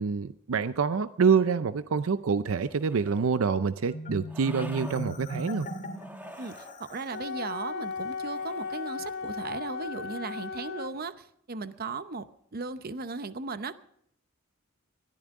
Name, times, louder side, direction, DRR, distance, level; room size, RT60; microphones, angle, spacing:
voice 1, 0.0-5.7, right 5 dB, 75° right, 13 dB, 0.5 m, -26 dB
sound 1, 2.5-3.4 4.3-5.0 5.9-6.8 8.1-8.9, right 1 dB, 10° right, 1.4 m, -48 dB
Marimba xylophone, 3.9-7.3, equal, 40° left, 2.6 m, -38 dB
voice 2, 6.4-12.3 12.5-13.8, right 4 dB, 45° right, 12 dB, 0.8 m, -37 dB
Wind instrument woodwind instrument, 7.1-11.0, left 4 dB, 70° left, 1.6 m, -36 dB
21.0 x 14.0 x 3.7 m, 0.70 s
head